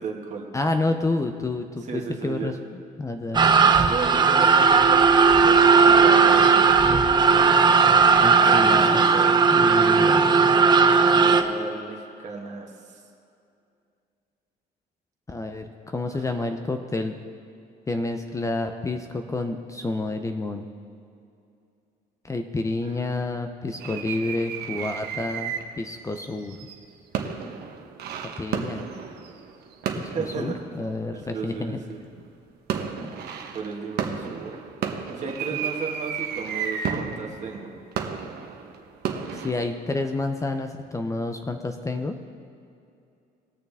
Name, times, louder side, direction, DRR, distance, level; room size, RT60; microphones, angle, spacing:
voice 1, 0.0-0.5 1.9-2.5 3.8-7.6 8.4-9.4 10.8-13.0 16.1-16.3 22.8-22.9 30.1-30.6 31.3-32.0 33.5-34.6 35.2-37.7, right 5 dB, 45° right, 0 dB, 1.8 m, -34 dB
voice 2, 0.5-2.6 3.0-3.4 8.2-9.1 9.5-10.3 15.3-17.2 17.9-20.7 22.2-26.6 28.4-28.8 30.0-30.1 30.4-31.8 39.3-42.2, left 2 dB, 20° left, 6 dB, 0.6 m, -29 dB
sound 1, 3.3-11.4, right 5 dB, 25° right, 0.7 m, -17 dB
sound 2, 23.8-25.9 26.3-31.2 31.9-32.3 32.7-39.5, right 7 dB, 75° right, 1.1 m, -33 dB
19.5 x 6.7 x 3.5 m, 2.6 s
cardioid pair, 110°, 17 cm